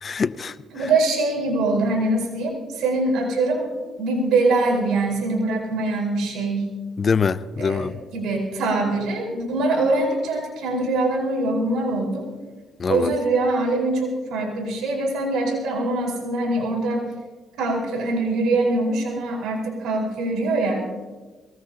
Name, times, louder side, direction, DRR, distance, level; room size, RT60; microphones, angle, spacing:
voice 1, 0.0-0.6 7.0-8.0 12.8-13.1, left 5 dB, 40° left, 0.6 m, -23 dB
voice 2, 0.7-3.7 4.0-6.7 7.6-12.2 12.9-17.1 17.6-21.1, right 2 dB, 85° right, 4.8 m, -23 dB
23.0 x 19.0 x 2.9 m
cardioid pair, 90°, 0 cm